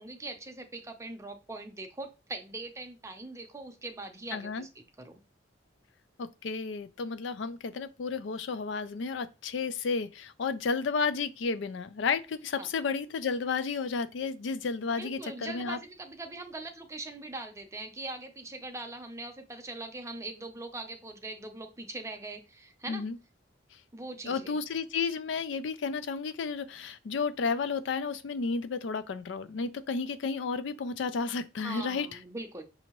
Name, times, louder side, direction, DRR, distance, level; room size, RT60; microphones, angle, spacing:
voice 1, 0.0-4.7 5.0-5.2 12.6-12.7 14.9-23.0 23.9-24.6 31.6-32.6, right 2 dB, 15° right, 0.6 m, -41 dB
voice 2, 4.3-4.6 6.2-15.8 22.9-23.2 24.2-32.1, left 5 dB, 75° left, 0.4 m, -32 dB
6.1 x 2.8 x 2.9 m
head